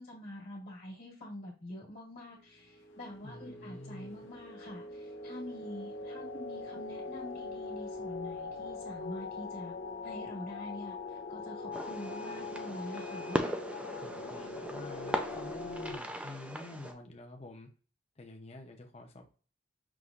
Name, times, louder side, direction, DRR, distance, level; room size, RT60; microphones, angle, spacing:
voice 1, 0.0-9.7 10.0-13.4, left 1 dB, 50° left, -4 dB, 1.6 m, -46 dB
sound 1, 2.6-16.0, left 3 dB, 85° left, 0.8 m, -42 dB
voice 2, 3.2-4.3 14.0-17.7 18.2-19.3, left 2 dB, 30° left, 3 dB, 0.7 m, -48 dB
Fireworks, 11.7-16.9, equal, 5° right, 0.4 m, -38 dB
6.0 x 3.0 x 2.5 m, 0.38 s
head